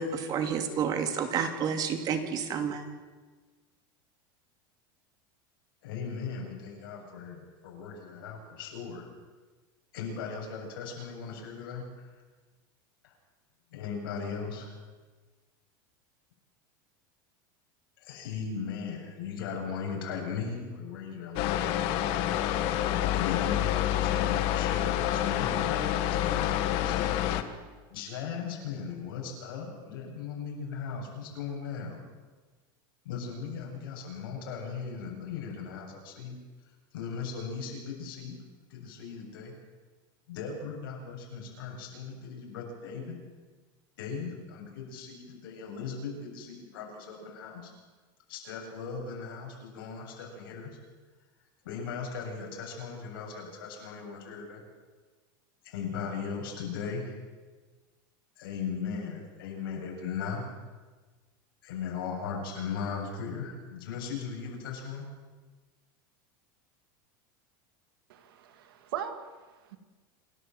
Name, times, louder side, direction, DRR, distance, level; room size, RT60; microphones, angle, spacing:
voice 1, 0.0-2.8, right 6 dB, 35° right, 7 dB, 2.4 m, -30 dB
voice 2, 5.8-9.1 9.9-12.2 13.0-13.2 13.7-14.8 18.0-22.2 23.1-27.1 27.9-32.0 33.0-36.4 36.9-38.4 38.7-39.5 40.3-43.2 44.0-47.7 48.3-50.8 51.6-54.6 55.6-57.1 58.4-60.6 61.6-65.1, left 6 dB, 90° left, 0 dB, 7.5 m, -38 dB
sound 1, 21.4-27.4, left 12 dB, 50° left, 1.6 m, -28 dB
voice 3, 68.1-69.8, right 9 dB, 85° right, 8 dB, 2.4 m, -40 dB
27.5 x 13.0 x 7.7 m, 1.3 s
supercardioid pair, 150°, 12 cm